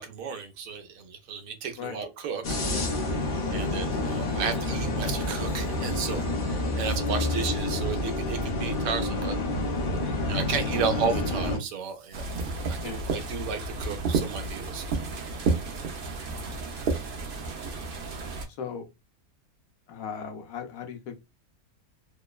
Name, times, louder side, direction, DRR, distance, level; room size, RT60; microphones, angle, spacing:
voice 1, 0.0-2.9 3.5-9.4 10.3-12.4 12.7-14.8, right 6 dB, 75° right, 1.0 m, -33 dB
sound 1, 2.4-11.6, left 2 dB, 50° left, 0.7 m, -28 dB
sound 2, 12.1-18.5, right 3 dB, 55° right, 0.6 m, -31 dB
voice 2, 16.2-16.6 18.5-18.9 19.9-21.2, left 7 dB, 75° left, 1.1 m, -38 dB
2.9 x 2.0 x 2.3 m
omnidirectional pair, 1.5 m